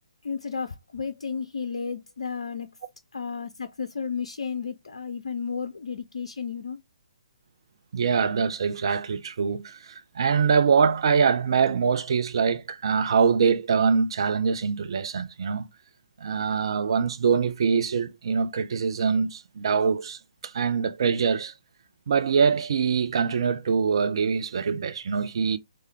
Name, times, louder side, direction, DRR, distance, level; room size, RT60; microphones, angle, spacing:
voice 1, 0.2-2.7 3.1-6.8, left 6 dB, 60° left, 0.5 m, -33 dB
voice 2, 7.9-15.7 16.2-21.5 22.1-25.6, right 6 dB, 50° right, 0.5 m, -24 dB
3.4 x 3.2 x 3.2 m
figure-of-eight pair, 135°, 4 cm